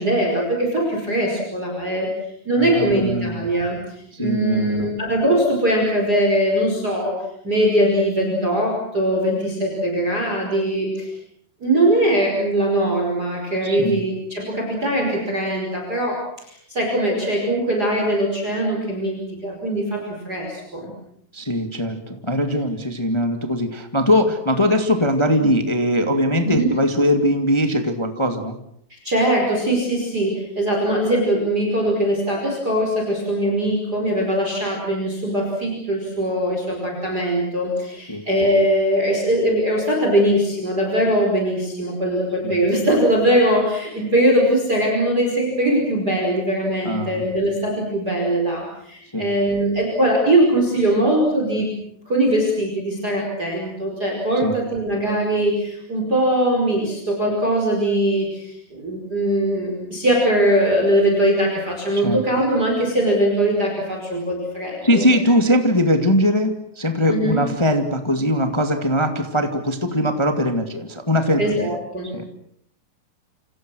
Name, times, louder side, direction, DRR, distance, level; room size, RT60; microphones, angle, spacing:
voice 1, 0.0-2.1 2.5-7.1 7.4-11.1 11.6-16.2 16.5-20.9 25.4-25.5 26.5-26.7 28.9-51.7 52.1-65.1 67.1-67.5 71.4-72.1, right 1 dB, 20° right, 0 dB, 5.5 m, -21 dB
voice 2, 2.6-3.4 4.1-4.9 13.6-14.0 21.3-28.5 38.1-38.2 42.4-42.6 46.8-47.2 49.1-49.3 54.3-54.5 62.0-62.2 64.8-71.7 72.1-72.2, equal, 25° left, 6 dB, 0.6 m, -21 dB
28.0 x 28.0 x 6.4 m, 0.70 s
omnidirectional pair, 4.7 m